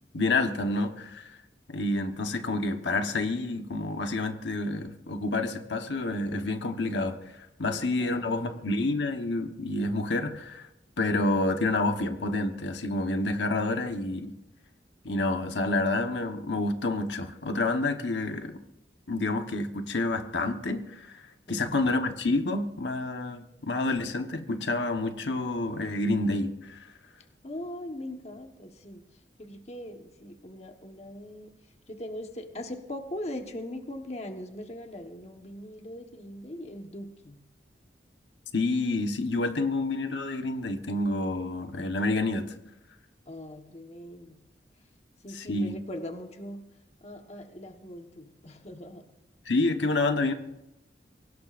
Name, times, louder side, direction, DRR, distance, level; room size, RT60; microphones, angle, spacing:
voice 1, 0.1-1.3 1.7-7.2 7.6-10.7 11.0-14.3 15.0-18.6 19.1-26.9 38.5-42.5 45.3-45.7 49.5-50.3, left 2 dB, 90° left, 6 dB, 1.2 m, -28 dB
voice 2, 7.7-8.7 21.5-21.9 27.4-29.0 29.4-31.5 31.9-37.4 43.3-44.4 45.2-46.6 47.0-49.0, left 1 dB, 35° left, 4 dB, 1.3 m, -40 dB
23.5 x 17.5 x 2.6 m, 0.90 s
head